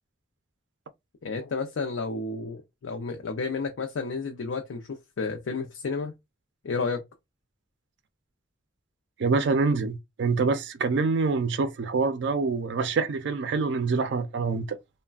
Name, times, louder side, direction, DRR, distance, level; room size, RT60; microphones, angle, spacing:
voice 1, 1.2-6.1 6.6-7.0, left 4 dB, 85° left, 0.5 m, -31 dB
voice 2, 9.2-14.8, right 4 dB, 65° right, 0.4 m, -26 dB
3.2 x 2.1 x 2.3 m
head